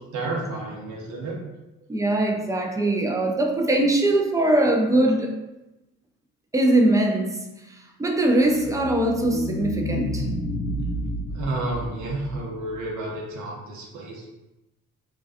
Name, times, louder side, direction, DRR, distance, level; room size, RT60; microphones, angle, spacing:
voice 1, 0.1-1.4 11.3-14.3, right 2 dB, 75° right, -2 dB, 0.7 m, -31 dB
voice 2, 1.9-5.3 6.5-7.5 8.0-10.2, right 1 dB, 10° right, 2 dB, 0.3 m, -21 dB
sound 1, 8.3-12.8, left 1 dB, 65° left, 0.8 m, -30 dB
2.3 x 2.2 x 2.5 m, 0.96 s
cardioid pair, 90°, 30 cm